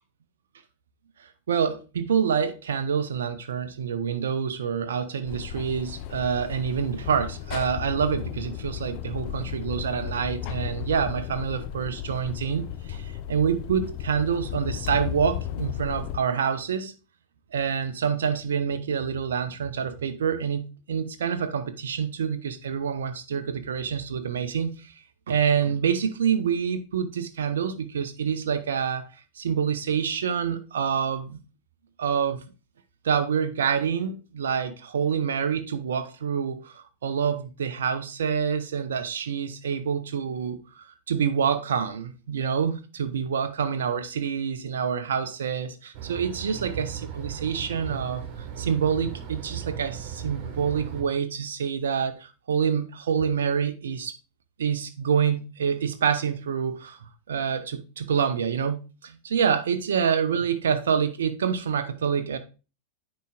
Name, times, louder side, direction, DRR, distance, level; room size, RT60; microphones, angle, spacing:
voice 1, 1.5-16.9 17.5-20.6 20.9-24.9 25.3-29.1 29.4-31.4 32.0-32.4 33.0-48.2 48.6-54.2 54.6-57.0 57.3-58.8 59.0-62.4, right 7 dB, 65° right, 0.5 m, -27 dB
sound 1, 5.3-16.2, left 11 dB, 45° left, 0.4 m, -35 dB
sound 2, 45.9-51.0, right 8 dB, 40° right, 1.5 m, -37 dB
9.1 x 4.8 x 2.3 m
figure-of-eight pair, 90°, 0 cm